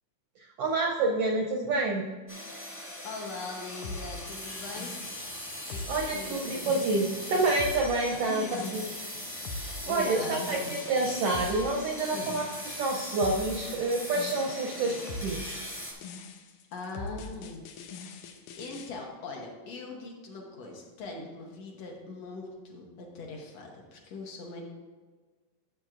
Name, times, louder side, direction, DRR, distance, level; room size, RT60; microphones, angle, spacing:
voice 1, 0.6-2.1 5.9-8.9 9.9-15.6, right 2 dB, 80° right, 1 dB, 1.3 m, -28 dB
sound 1, 2.3-15.9, left 1 dB, 15° left, 0.8 m, -40 dB
voice 2, 3.0-5.0 5.7-6.7 8.3-9.2 9.9-10.8 12.1-12.4 16.7-17.6 17.9-24.7, left 3 dB, 65° left, 0 dB, 2.0 m, -41 dB
sound 2, 3.8-18.9, left 3 dB, 90° left, 2.1 m, -42 dB
12.0 x 7.2 x 2.5 m, 1.4 s
omnidirectional pair, 3.4 m